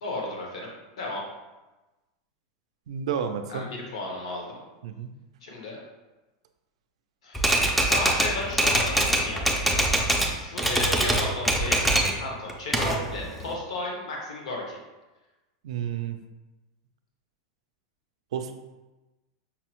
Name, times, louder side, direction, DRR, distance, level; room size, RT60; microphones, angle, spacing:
voice 1, 0.0-1.2 3.5-4.6 5.4-5.8 7.2-9.5 10.4-14.8, left 2 dB, 85° left, -1 dB, 0.9 m, -34 dB
voice 2, 2.9-3.7 4.8-5.1 15.6-16.2 18.3-18.5, right 8 dB, 85° right, 7 dB, 0.4 m, -30 dB
Typewriter, 7.3-10.3 10.6-12.2 12.5-13.5, right 1 dB, ahead, 0.3 m, -23 dB
5.5 x 2.0 x 2.9 m, 1.1 s
supercardioid pair, 165°, 3 cm